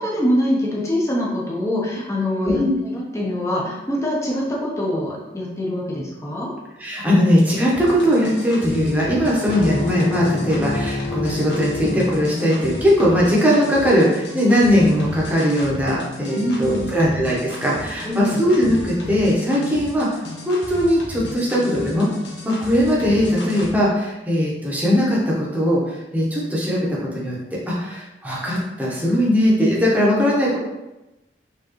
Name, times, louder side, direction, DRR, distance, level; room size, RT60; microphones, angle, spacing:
voice 1, 0.0-6.5 16.4-17.1 18.0-18.4, left 1 dB, 15° left, -4 dB, 0.8 m, -24 dB
voice 2, 6.8-22.1 22.4-27.3 27.7-30.6, equal, 10° right, -5 dB, 1.0 m, -19 dB
sound 1, 7.7-23.7, left 1 dB, 85° left, 1.1 m, -35 dB
sound 2, 9.5-13.1, left 3 dB, 35° left, 0.5 m, -28 dB
4.6 x 3.7 x 3.1 m, 1.0 s
head